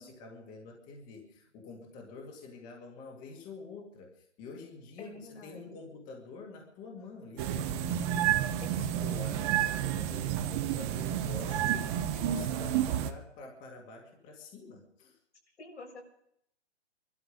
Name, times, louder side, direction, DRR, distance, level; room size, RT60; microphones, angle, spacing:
voice 1, 0.0-11.8 12.1-15.2, left 3 dB, 25° left, 1 dB, 2.2 m, -47 dB
voice 2, 5.0-5.8 8.6-8.7 11.7-12.0 15.6-16.0, left 2 dB, 80° left, 0 dB, 6.7 m, -48 dB
sound 1, 7.4-13.1, right 11 dB, 25° right, 0.9 m, -30 dB
22.5 x 12.5 x 5.2 m, 0.73 s
hypercardioid pair, 140°, 34 cm